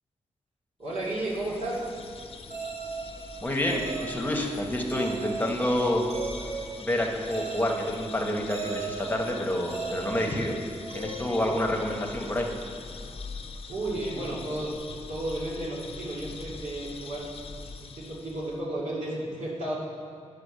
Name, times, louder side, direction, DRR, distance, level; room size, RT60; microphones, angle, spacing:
voice 1, 0.8-1.9 13.7-14.7 15.1-17.2 17.8-19.8, right 1 dB, 70° right, -7 dB, 2.6 m, -33 dB
sound 1, 0.9-18.6, left 4 dB, 45° left, 0.6 m, -43 dB
sound 2, 2.5-12.3, right 5 dB, 55° right, 1.1 m, -39 dB
voice 2, 3.4-6.1 6.8-10.6 10.9-12.5, left 1 dB, 15° left, 0 dB, 1.1 m, -28 dB
9.9 x 5.3 x 6.5 m, 2.3 s
wide cardioid pair, 150°, 13 cm